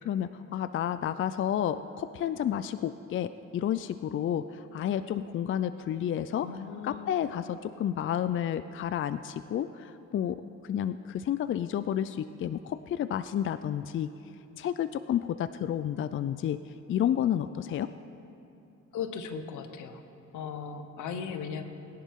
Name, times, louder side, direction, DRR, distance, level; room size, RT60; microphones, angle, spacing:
voice 1, 0.0-6.5 6.8-14.1 14.6-17.9, left 10 dB, 45° left, 13 dB, 0.4 m, -31 dB
voice 2, 6.4-7.2 18.9-20.0 20.3-21.6, left 6 dB, 80° left, 8 dB, 1.1 m, -37 dB
21.5 x 10.5 x 3.7 m, 2.8 s
cardioid pair, 90°, 30 cm